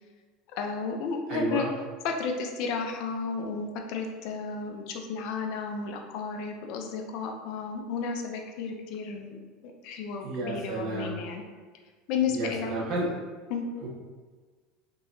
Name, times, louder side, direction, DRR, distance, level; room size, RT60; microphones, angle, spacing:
voice 1, 0.5-1.7 2.0-9.4 9.8-11.4 12.1-12.7 13.5-13.6, left 5 dB, 65° left, 3 dB, 0.5 m, -32 dB
voice 2, 1.3-1.6 10.2-11.1 12.3-13.1 13.8-13.9, right 2 dB, 60° right, -6 dB, 1.5 m, -31 dB
3.6 x 2.9 x 2.7 m, 1.4 s
supercardioid pair, 105°, 0 cm